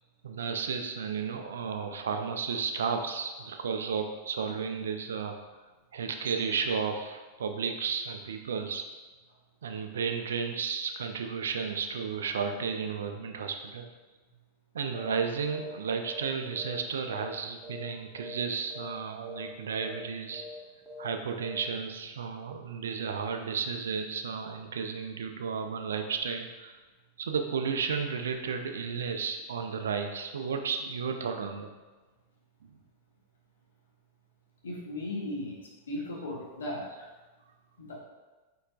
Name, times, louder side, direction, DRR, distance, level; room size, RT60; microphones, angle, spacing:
voice 1, 0.2-5.4 5.9-8.8 9.6-13.9 14.7-20.4 21.0-26.8 27.2-31.7 32.7-32.8, right 6 dB, 65° right, 6 dB, 0.4 m, -33 dB
sound 1, 14.9-15.2 15.5-15.8 16.0-17.4 17.6-17.9 18.2-18.5 18.7-19.0 19.2-19.5 19.8-20.1 20.3-20.6 20.9-21.1 21.4-21.7, left 2 dB, 10° right, 0.9 m, -43 dB
voice 2, 34.6-35.6 35.9-36.9 37.8-38.0, left 1 dB, 65° left, -3 dB, 1.1 m, -36 dB
4.8 x 4.3 x 2.3 m, 1.2 s
figure-of-eight pair, 90°, 0 cm